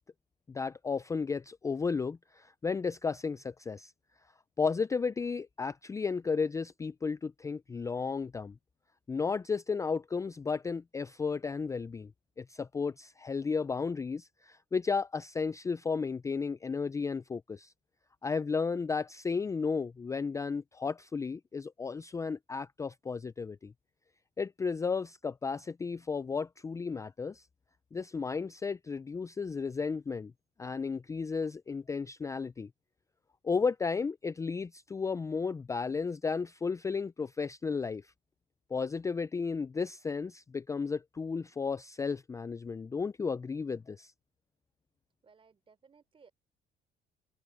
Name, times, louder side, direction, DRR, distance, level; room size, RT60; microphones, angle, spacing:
voice 1, 0.5-3.9 4.6-8.6 9.1-12.1 12.4-17.7 18.2-23.7 24.4-27.4 27.9-30.3 30.6-32.7 33.4-38.1 38.7-44.1, left 5 dB, 20° left, 0.4 m, -33 dB
voice 2, 45.2-46.3, right 5 dB, 30° right, 4.0 m, -61 dB
open air
cardioid pair, 110°, 17 cm